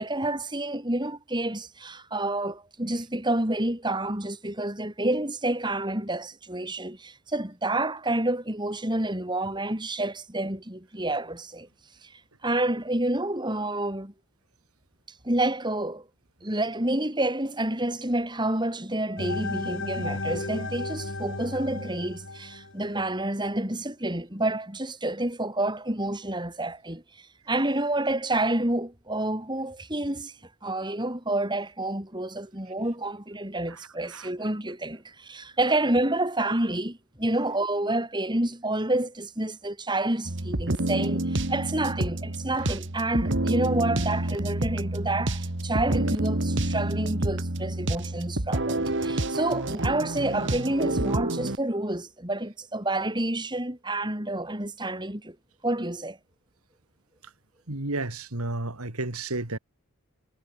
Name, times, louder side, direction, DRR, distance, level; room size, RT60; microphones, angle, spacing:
voice 1, 0.0-11.7 12.0-14.1 15.2-16.1 16.4-30.3 30.6-55.4 55.6-56.2, right 1 dB, 20° right, 4.5 m, -29 dB
sound 1, 19.2-23.2, left 2 dB, 60° left, 4.6 m, -34 dB
sound 2, 40.2-51.6, right 1 dB, 55° right, 1.9 m, -28 dB
voice 2, 57.7-59.6, right 2 dB, 90° right, 3.0 m, -32 dB
head